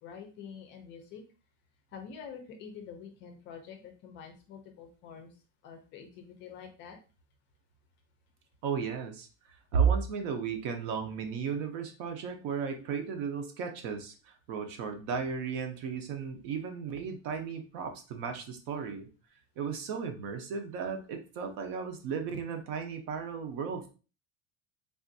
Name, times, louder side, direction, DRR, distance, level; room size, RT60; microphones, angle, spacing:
voice 1, 0.0-1.2 1.9-5.4 5.6-7.0, left 6 dB, 35° left, 4 dB, 0.4 m, -47 dB
voice 2, 8.6-19.1 19.6-23.9, right 6 dB, 60° right, 5 dB, 0.7 m, -34 dB
3.5 x 2.5 x 2.6 m, 0.34 s
cardioid pair, 170°, 35 cm